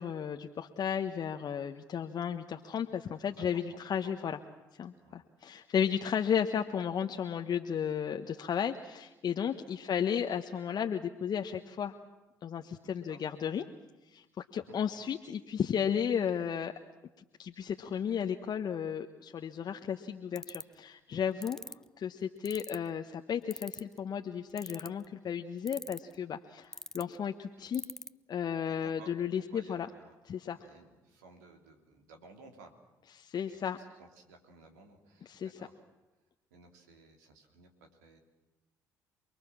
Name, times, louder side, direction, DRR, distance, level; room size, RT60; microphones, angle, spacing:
voice 1, 0.0-4.4 4.8-12.0 12.4-13.6 14.1-14.2 14.5-16.7 17.4-21.6 22.0-27.8 28.3-29.9 30.2-30.7 33.2-33.8 35.2-35.5, left 8 dB, 50° left, 5 dB, 1.2 m, -34 dB
voice 2, 12.8-13.2 14.5-14.8 21.1-21.5 27.6-27.7 28.6-29.1 29.5-30.1 30.5-32.7 33.5-35.7 36.5-38.2, right 3 dB, 80° right, 4 dB, 3.0 m, -57 dB
sound 1, 20.4-20.7 21.4-21.7 22.4-22.9 23.5-24.0 24.6-25.0 25.7-26.1 26.7-27.0 27.7-28.1, left 1 dB, 5° left, 0.8 m, -40 dB
28.5 x 21.0 x 7.4 m, 1.0 s
hypercardioid pair, 50°, 9 cm